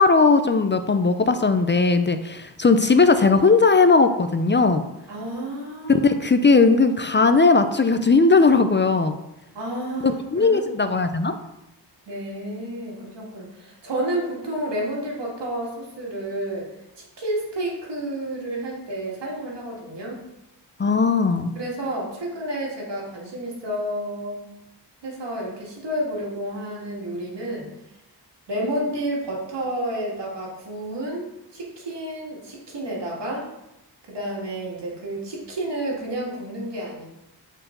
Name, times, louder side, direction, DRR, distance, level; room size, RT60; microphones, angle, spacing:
voice 1, 0.0-4.8 5.9-9.2 10.0-11.4 20.8-21.5, left 4 dB, 30° left, 9 dB, 0.5 m, -18 dB
voice 2, 5.1-6.1 9.5-11.0 12.1-16.7 16.9-20.2 21.6-24.4 25.0-27.7 28.5-33.5 34.1-37.0, right 1 dB, 80° right, -3 dB, 2.2 m, -30 dB
7.5 x 4.6 x 3.9 m, 0.90 s
cardioid pair, 70°, 41 cm